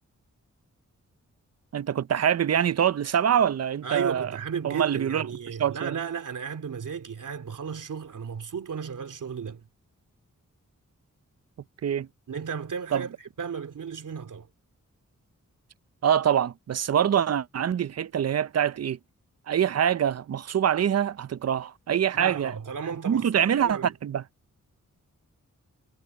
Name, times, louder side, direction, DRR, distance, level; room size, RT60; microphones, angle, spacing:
voice 1, 1.7-4.3 4.6-5.2 5.6-5.9 11.8-12.1 12.9-13.1 16.0-19.0 19.5-22.5 23.1-24.2, right 9 dB, 55° right, 0.6 m, -24 dB
voice 2, 3.8-9.7 12.3-14.5 22.1-23.9, right 6 dB, 85° right, 3.1 m, -34 dB
wide cardioid pair, 130°, 31 cm